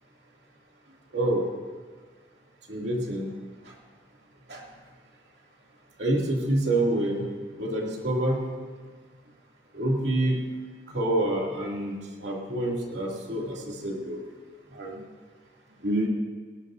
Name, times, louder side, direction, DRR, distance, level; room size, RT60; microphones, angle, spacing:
voice 1, 1.1-1.5 2.7-3.3 4.5-4.6 6.0-7.2 7.6-8.4 9.7-10.4 10.9-14.2 14.7-15.0 15.8-16.1, right 1 dB, 80° right, -2 dB, 2.6 m, -27 dB
19.0 x 18.5 x 2.7 m, 1.5 s
head